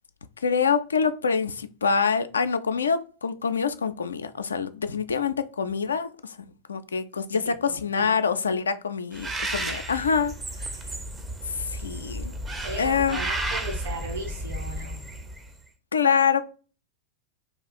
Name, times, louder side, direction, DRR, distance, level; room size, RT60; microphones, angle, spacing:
voice 1, 0.4-10.3 11.5-12.3 12.8-13.2 15.9-16.4, left 6 dB, 70° left, 0.3 m, -25 dB
voice 2, 7.3-8.3 12.6-15.0, right 2 dB, 70° right, 1.7 m, -37 dB
Bird, 9.1-15.5, right 1 dB, 15° right, 0.5 m, -33 dB
2.8 x 2.4 x 4.1 m
figure-of-eight pair, 90°, 0 cm